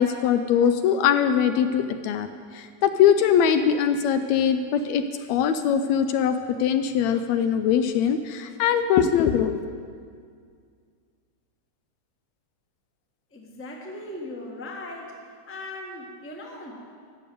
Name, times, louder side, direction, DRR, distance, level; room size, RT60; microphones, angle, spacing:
voice 1, 0.0-2.3 2.5-5.0 5.3-9.6, left 8 dB, 80° left, 9 dB, 1.7 m, -22 dB
voice 2, 13.3-15.2 15.5-16.9, left 1 dB, 10° left, -1 dB, 0.9 m, -38 dB
14.0 x 6.8 x 9.2 m, 2.1 s
omnidirectional pair, 3.4 m